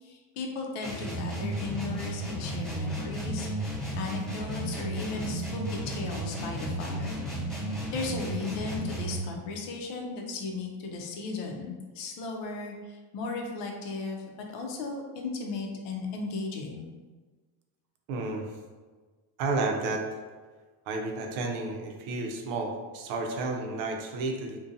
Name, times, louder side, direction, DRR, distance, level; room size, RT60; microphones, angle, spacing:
voice 1, 0.0-3.5 4.0-7.2 7.9-14.2 14.5-16.8, left 3 dB, 60° left, 1 dB, 0.6 m, -36 dB
sound 1, 0.8-9.3, right 1 dB, ahead, 0.8 m, -34 dB
voice 2, 18.1-18.5 19.4-20.1 20.9-24.6, right 3 dB, 75° right, 2 dB, 0.6 m, -31 dB
2.6 x 2.2 x 2.5 m, 1.4 s
cardioid pair, 140°, 49 cm